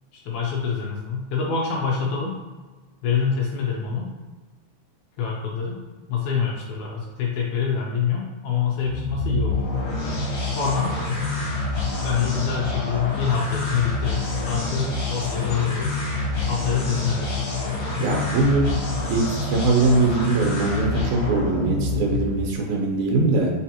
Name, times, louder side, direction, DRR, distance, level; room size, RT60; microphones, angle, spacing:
voice 1, 0.1-2.4 3.0-4.1 5.2-5.8 6.1-9.6 10.5-11.0 12.0-16.0 16.5-17.3, left 6 dB, 80° left, -1 dB, 1.9 m, -26 dB
sound 1, 8.8-22.5, left 2 dB, 60° left, 1.9 m, -27 dB
voice 2, 18.0-23.5, right 3 dB, 75° right, 0 dB, 2.2 m, -22 dB
4.4 x 4.0 x 2.9 m, 1.3 s
omnidirectional pair, 3.5 m